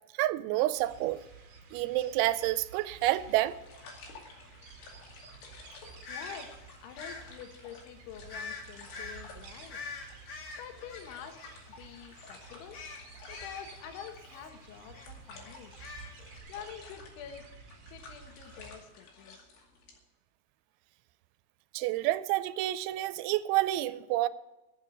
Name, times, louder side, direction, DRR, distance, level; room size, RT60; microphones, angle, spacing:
voice 1, 0.2-1.2 1.7-3.6 21.7-24.3, right 16 dB, 85° right, 3.0 m, -29 dB
sound 1, 0.7-18.8, right 4 dB, 50° right, 1.9 m, -52 dB
sound 2, 3.0-20.0, left 4 dB, 65° left, 4.3 m, -54 dB
sound 3, 6.0-6.4 7.0-7.2 8.3-8.6 8.9-9.2 9.7-11.9 12.2-12.4 12.7-14.6 14.9-15.1 15.4-16.4, left 4 dB, 45° left, 2.5 m, -43 dB
voice 2, 6.1-9.9 10.6-11.4 11.8-12.8 13.3-15.8 16.1-17.5 17.9-19.5, left 8 dB, 85° left, 3.5 m, -47 dB
13.5 x 7.4 x 8.7 m
omnidirectional pair, 5.3 m